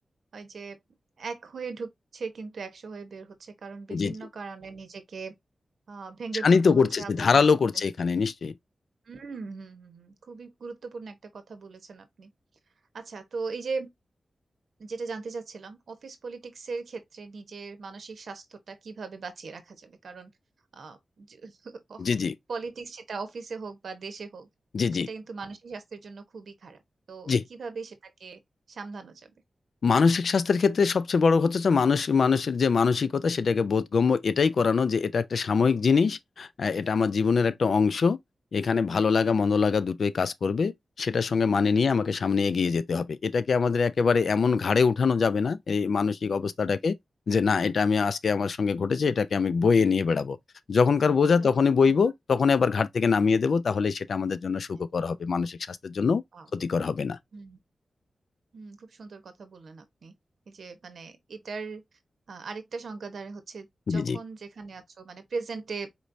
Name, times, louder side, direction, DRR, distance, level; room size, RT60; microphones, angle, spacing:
voice 1, 0.3-0.8 1.2-5.3 5.9-7.5 7.7-7.9 9.1-12.3 12.9-13.9 14.8-20.3 20.7-22.1 22.5-24.5 24.9-26.8 27.1-28.4 28.7-29.3 41.7-41.8 51.4-51.5 51.8-52.1 53.3-53.4 54.7-54.8 56.3-56.5 57.3-57.6 58.5-60.2 60.5-61.8 62.3-65.9, right 4 dB, 75° right, 1.0 m, -39 dB
voice 2, 6.4-8.5 22.0-22.3 24.7-25.1 27.3-27.4 29.8-38.2 38.5-40.7 41.0-47.0 47.3-50.4 50.7-56.2 56.5-57.2 63.9-64.2, left 5 dB, 70° left, 0.4 m, -23 dB
4.5 x 3.1 x 2.6 m
wide cardioid pair, 100°, 0 cm